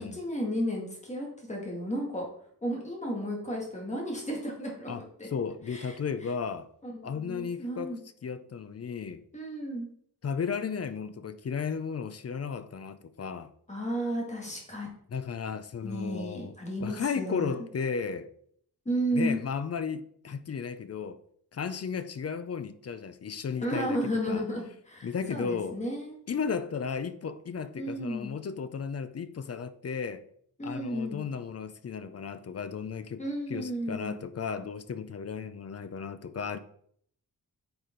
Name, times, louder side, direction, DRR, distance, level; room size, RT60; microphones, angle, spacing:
voice 1, 0.0-2.3 2.6-5.3 5.7-6.3 6.8-8.0 9.3-9.9 13.7-14.9 15.8-17.6 18.9-19.4 23.6-26.2 27.8-28.3 30.6-31.2 33.2-34.1, equal, 20° left, 2.1 m, -33 dB
voice 2, 5.3-6.7 7.0-7.9 8.2-9.2 10.2-13.5 15.1-16.5 16.8-18.3 19.1-21.2 21.5-24.0 24.3-24.5 25.0-25.8 26.3-30.2 30.6-33.2 33.5-36.6, left 6 dB, 40° left, 0.5 m, -34 dB
9.4 x 5.0 x 3.8 m
wide cardioid pair, 170°, 37 cm